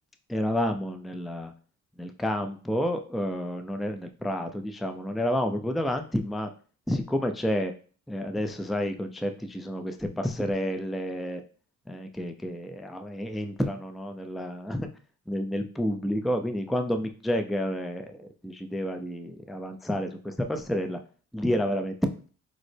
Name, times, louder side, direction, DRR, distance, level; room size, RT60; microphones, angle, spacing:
voice 1, 0.3-1.5 2.0-6.5 6.9-7.7 8.1-11.4 11.9-14.9 15.3-21.0 21.3-22.3, equal, ahead, 7 dB, 0.3 m, -30 dB
6.1 x 2.1 x 3.2 m, 0.39 s
cardioid pair, 90°, 30 cm